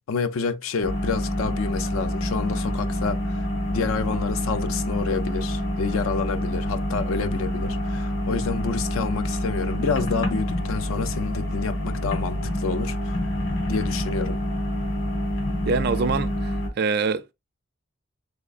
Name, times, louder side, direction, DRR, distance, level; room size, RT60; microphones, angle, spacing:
voice 1, 0.1-13.2 13.7-14.4, left 5 dB, 85° left, 0.4 m, -29 dB
sound 1, 0.8-16.7, left 1 dB, 60° left, 1.4 m, -27 dB
voice 2, 15.7-17.3, right 5 dB, 50° right, 0.4 m, -25 dB
3.6 x 3.2 x 2.4 m
head